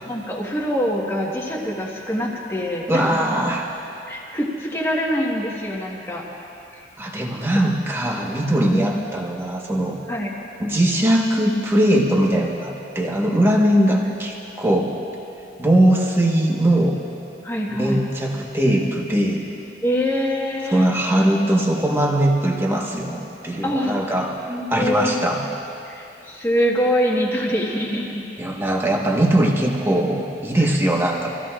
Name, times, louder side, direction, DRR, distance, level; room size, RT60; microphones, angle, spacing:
voice 1, 0.0-3.0 4.1-6.3 6.7-6.8 8.7-9.0 10.1-10.3 17.4-18.0 19.8-20.9 23.6-23.9 24.5-25.2 25.8-28.2, equal, 15° left, -3 dB, 1.5 m, -24 dB
voice 2, 2.9-3.7 7.0-10.0 10.6-14.9 15.6-17.0 17.7-19.4 20.7-24.3 24.7-25.4 28.4-31.3, right 1 dB, 15° right, -2 dB, 1.4 m, -20 dB
25.5 x 16.0 x 2.5 m, 2.7 s
head